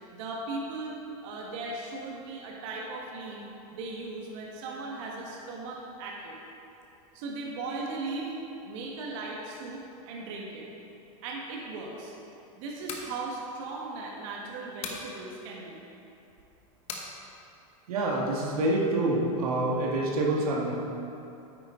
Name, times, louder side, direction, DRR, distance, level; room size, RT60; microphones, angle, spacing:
voice 1, 0.1-0.9 1.2-3.4 3.7-6.4 7.1-8.4 8.6-10.7 11.2-12.2 12.6-15.8, right 3 dB, 60° right, -2 dB, 1.6 m, -37 dB
sound 1, 12.8-13.1 14.8-15.1 16.9-17.1, left 5 dB, 35° left, 1.2 m, -37 dB
voice 2, 17.9-20.7, right 2 dB, 85° right, -3 dB, 1.7 m, -27 dB
9.4 x 8.7 x 3.9 m, 2.8 s
supercardioid pair, 135°, 18 cm